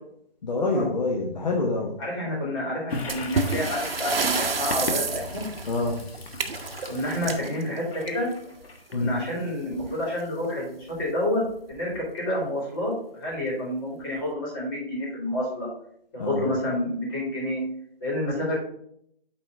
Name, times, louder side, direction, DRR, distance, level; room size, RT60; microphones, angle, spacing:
voice 1, 0.4-2.0 5.7-6.0 8.9-9.1 16.2-16.5, left 2 dB, 45° left, -1 dB, 1.1 m, -26 dB
voice 2, 2.0-5.4 6.9-8.3 8.9-11.4 11.7-15.7 16.1-17.6 18.0-18.6, left 1 dB, 20° left, -5 dB, 2.8 m, -29 dB
Toilet flush, 2.9-9.4, left 3 dB, 75° left, 1.4 m, -37 dB
sound 1, 3.1-8.5 9.7-9.9 10.2-10.3 10.9-11.0 11.7-12.0, right 4 dB, 70° right, 1.0 m, -30 dB
8.8 x 4.1 x 3.8 m, 0.67 s
hypercardioid pair, 170°, 30 cm